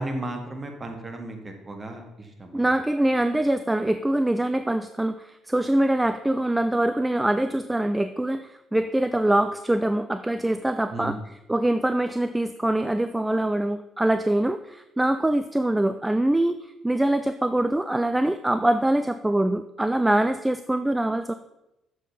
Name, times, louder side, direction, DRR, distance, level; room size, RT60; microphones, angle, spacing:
voice 1, 0.0-2.0 2.4-2.7 10.9-11.2, right 1 dB, 30° right, 3 dB, 1.8 m, -34 dB
voice 2, 2.5-11.2 11.5-21.3, right 1 dB, 10° right, 10 dB, 0.4 m, -24 dB
7.1 x 6.6 x 5.5 m, 0.89 s
figure-of-eight pair, 45°, 0 cm